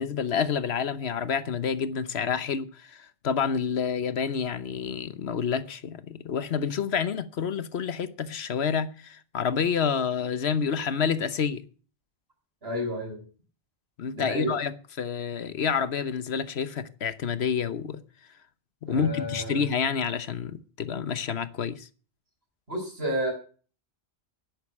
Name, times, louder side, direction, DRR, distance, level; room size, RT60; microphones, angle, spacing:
voice 1, 0.0-11.6 14.0-18.0 18.8-21.9, left 6 dB, 85° left, 1.2 m, -28 dB
voice 2, 12.6-13.2 14.1-14.5 18.9-19.6 22.7-23.3, equal, 70° right, 6.6 m, -31 dB
10.5 x 8.0 x 9.9 m
omnidirectional pair, 1.1 m